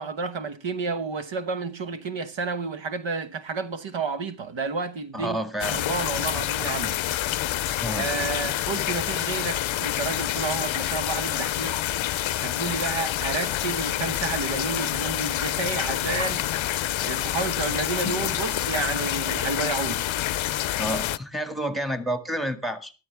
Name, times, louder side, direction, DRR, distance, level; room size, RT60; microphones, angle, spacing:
voice 1, 0.0-5.4 5.7-7.0 8.0-11.8 12.4-20.1, right 4 dB, 75° right, 1.1 m, -31 dB
voice 2, 5.1-5.8 7.7-8.1 20.8-22.9, right 1 dB, ahead, 1.8 m, -29 dB
sound 1, 5.6-21.2, left 13 dB, 90° left, 0.6 m, -27 dB
14.0 x 12.5 x 3.4 m
wide cardioid pair, 80°, 45 cm